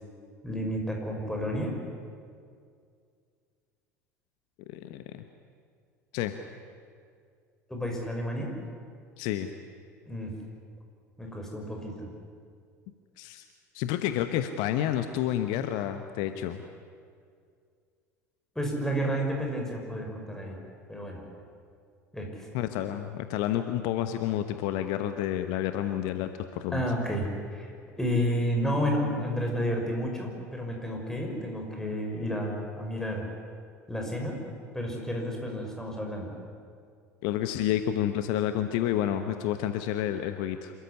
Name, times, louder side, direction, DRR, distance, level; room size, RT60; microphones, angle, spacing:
voice 1, 0.4-1.7 7.7-8.5 10.1-10.3 11.2-12.1 18.6-20.6 20.9-21.3 22.1-22.3 26.7-27.7 28.0-33.3 33.9-34.4 34.7-36.4, equal, 5° left, 1 dB, 5.9 m, -31 dB
voice 2, 4.7-5.2 6.1-6.3 9.2-9.5 13.2-13.4 13.7-16.6 22.5-26.9 37.2-40.7, left 11 dB, 55° left, 9 dB, 1.1 m, -29 dB
27.0 x 14.5 x 9.9 m, 2.2 s
figure-of-eight pair, 70°, 9 cm